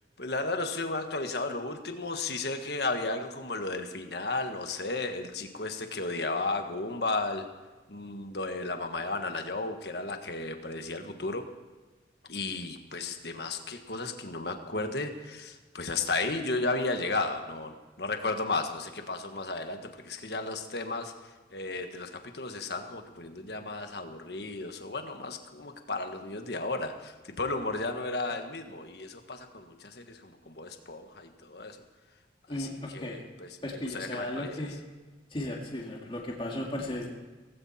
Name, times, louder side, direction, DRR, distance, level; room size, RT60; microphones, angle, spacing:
voice 1, 0.2-7.5 7.9-11.4 12.3-21.1 21.5-31.8 32.5-34.7, left 3 dB, 65° left, 6 dB, 1.5 m, -34 dB
voice 2, 32.5-33.2 33.6-34.7 35.3-37.1, left 1 dB, 30° left, -1 dB, 2.3 m, -35 dB
17.5 x 16.0 x 4.3 m, 1.3 s
head